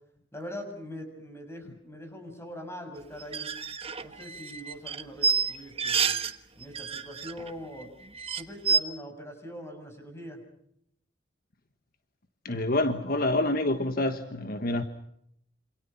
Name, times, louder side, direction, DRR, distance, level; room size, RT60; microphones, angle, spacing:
voice 1, 0.3-3.5 4.0-6.2 6.5-7.9 8.3-10.4, equal, 15° left, 5 dB, 7.2 m, -42 dB
sound 1, 3.2-6.4 6.6-7.5 7.8-7.9 8.2-8.8, right 5 dB, 30° right, 1.4 m, -28 dB
voice 2, 12.4-14.8, left 1 dB, 50° left, 8 dB, 1.5 m, -27 dB
28.0 x 27.5 x 5.9 m, 0.72 s
head